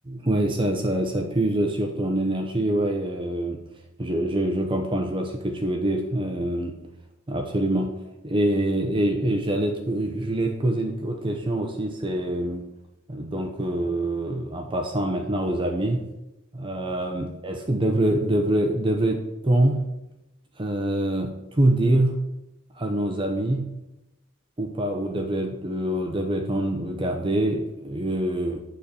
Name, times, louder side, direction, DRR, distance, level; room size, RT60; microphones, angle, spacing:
voice 1, 0.1-3.6 4.0-6.8 7.3-8.0 8.2-12.7 13.1-16.1 16.5-20.0 20.6-22.4 22.7-23.7 24.6-28.6, right 1 dB, 25° right, 3 dB, 0.7 m, -25 dB
9.1 x 4.3 x 6.9 m, 0.96 s
head